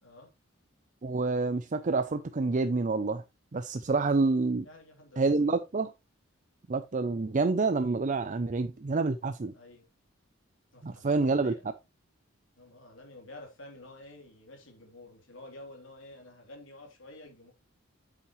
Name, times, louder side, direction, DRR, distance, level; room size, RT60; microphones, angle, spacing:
voice 1, 1.0-3.2 3.5-4.7 5.2-5.9 6.7-9.5 10.8-11.5, right 3 dB, 40° right, 0.5 m, -28 dB
voice 2, 4.6-5.3 9.5-9.9 10.7-11.6 12.6-17.5, left 2 dB, 75° left, 3.2 m, -49 dB
8.7 x 7.2 x 3.1 m
head